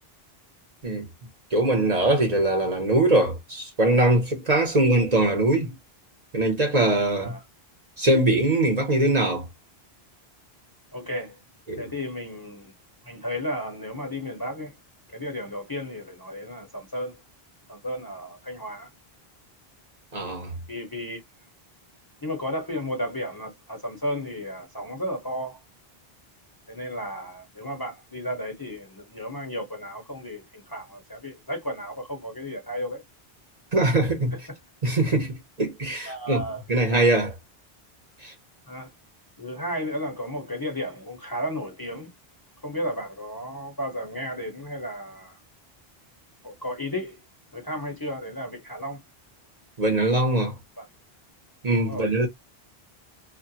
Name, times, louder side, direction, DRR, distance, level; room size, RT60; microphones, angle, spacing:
voice 1, 1.5-5.7 6.3-7.4 8.0-9.5 11.7-11.8 20.1-20.5 33.7-34.3 34.8-36.4 36.7-37.3 38.2-38.3 49.8-50.6 51.6-52.3, right 2 dB, 45° right, 0.9 m, -22 dB
voice 2, 7.1-7.4 10.9-11.4 11.8-12.7 13.0-14.7 15.1-17.2 17.7-18.9 20.7-21.2 22.2-25.6 26.7-33.0 34.3-34.4 36.1-36.6 38.7-38.9 39.4-42.1 42.6-45.4 46.4-47.2 47.5-49.0 50.8-50.9 51.9-52.1, equal, 25° left, 0.7 m, -33 dB
2.5 x 2.1 x 2.7 m
omnidirectional pair, 1.0 m